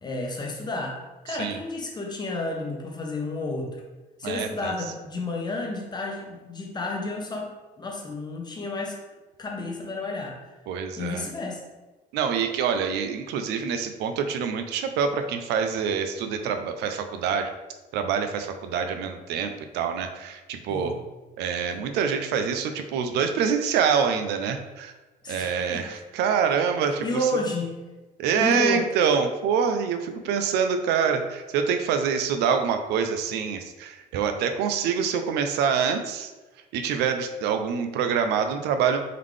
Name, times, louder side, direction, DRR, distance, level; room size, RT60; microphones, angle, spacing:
voice 1, 0.0-3.8 4.2-9.0 9.4-10.4 11.0-11.6 20.7-21.0 25.2-25.9 27.0-27.8 28.4-28.9, left 2 dB, 25° left, 0 dB, 0.9 m, -31 dB
voice 2, 4.2-4.7 10.7-11.2 12.1-17.5 17.9-21.0 21.4-24.9 25.3-27.3 28.2-36.3 36.7-39.0, right 6 dB, 85° right, 7 dB, 0.5 m, -26 dB
3.7 x 3.6 x 3.2 m, 1.1 s
cardioid pair, 110°, 17 cm